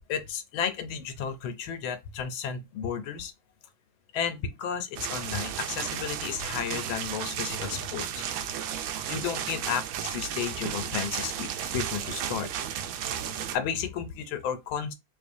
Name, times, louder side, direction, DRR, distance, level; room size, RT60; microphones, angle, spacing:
voice 1, 0.1-3.3 4.1-8.2 9.1-12.5 12.9-14.9, left 7 dB, 90° left, 1.5 m, -33 dB
sound 1, 5.0-13.6, right 9 dB, 85° right, 1.4 m, -34 dB
4.0 x 3.0 x 2.6 m
omnidirectional pair, 2.1 m